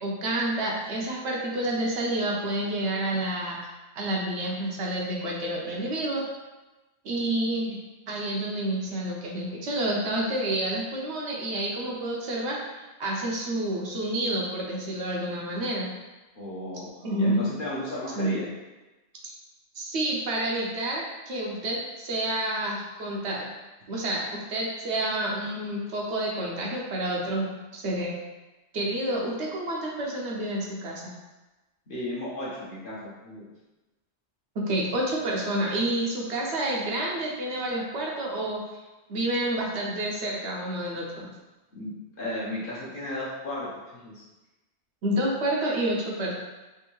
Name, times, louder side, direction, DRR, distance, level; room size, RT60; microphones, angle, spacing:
voice 1, 0.0-3.6 4.0-6.2 7.0-7.8 8.1-12.6 13.0-15.9 17.0-17.4 18.2-18.3 19.7-23.5 23.9-28.2 28.7-31.1 34.5-38.8 39.1-41.3 45.0-46.3, right 1 dB, 70° right, -3 dB, 0.9 m, -29 dB
voice 2, 16.3-16.8 17.2-18.5 31.9-33.4 41.7-41.9 42.2-43.7 43.9-44.2, left 1 dB, 50° left, -7 dB, 1.0 m, -34 dB
3.4 x 2.5 x 3.0 m, 1.1 s
omnidirectional pair, 1.2 m